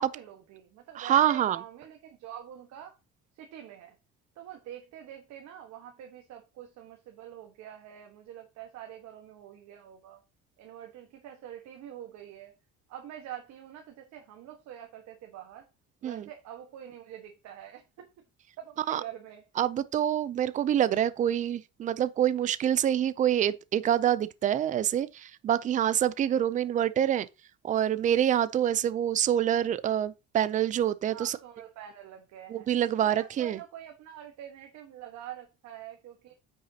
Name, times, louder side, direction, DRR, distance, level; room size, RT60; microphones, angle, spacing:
voice 1, 0.0-3.0 3.3-4.0 4.3-10.2 10.6-12.5 12.9-15.7 16.0-18.1 18.6-19.4 31.1-32.7 33.0-36.3, right 10 dB, 65° right, 1.3 m, -45 dB
voice 2, 1.0-1.6 16.0-16.2 18.9-19.0 19.6-27.3 27.6-31.3 32.5-33.6, right 10 dB, 25° right, 0.4 m, -26 dB
8.9 x 6.3 x 2.8 m
cardioid pair, 170°, 29 cm